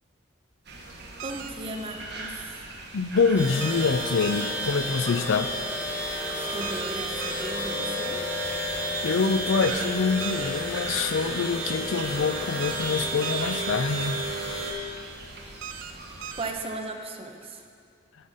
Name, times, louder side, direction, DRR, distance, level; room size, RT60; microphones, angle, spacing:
sound 1, 0.6-16.6, right 2 dB, 55° right, 1.3 m, -42 dB
voice 1, 1.2-2.7 6.3-8.2 16.4-17.6, right 2 dB, 30° right, 3 dB, 0.8 m, -36 dB
sound 2, 1.2-1.5 3.6-3.9 4.2-4.5 6.6-6.9 7.2-7.5 9.6-9.9 10.2-10.5 12.6-12.9 13.2-13.5 15.6-15.9 16.2-16.5, right 9 dB, 85° right, 0.5 m, -38 dB
voice 2, 2.9-5.5 9.0-14.3, left 5 dB, 80° left, 11 dB, 0.5 m, -25 dB
sound 3, 3.3-14.7, equal, 10° right, 2.4 m, -31 dB
12.5 x 5.6 x 6.4 m, 2.4 s
head